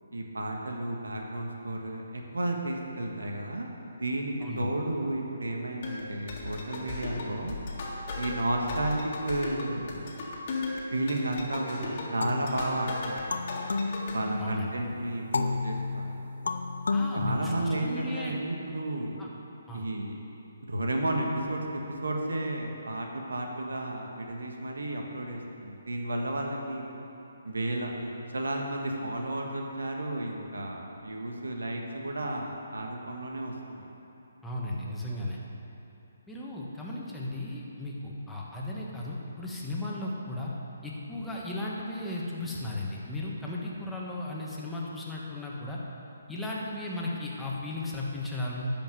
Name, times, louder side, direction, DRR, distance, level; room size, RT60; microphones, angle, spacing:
voice 1, 0.1-7.5 8.1-10.1 10.9-13.4 14.1-16.2 17.1-19.2 19.7-20.1 20.7-26.8 27.4-33.9, right 1 dB, 80° right, 1 dB, 1.5 m, -32 dB
voice 2, 4.4-4.7 14.4-14.7 16.9-18.4 19.2-19.3 19.7-19.9 34.4-35.4 36.3-40.5 40.8-45.8 46.3-48.7, left 2 dB, 5° left, -5 dB, 1.5 m, -35 dB
sound 1, 5.8-13.2 13.5-14.1, left 3 dB, 45° left, 1.9 m, -37 dB
sound 2, 12.2-14.7 15.3-18.1, left 3 dB, 70° left, 0.7 m, -32 dB
11.5 x 5.3 x 7.6 m, 3.0 s
figure-of-eight pair, 145°, 0 cm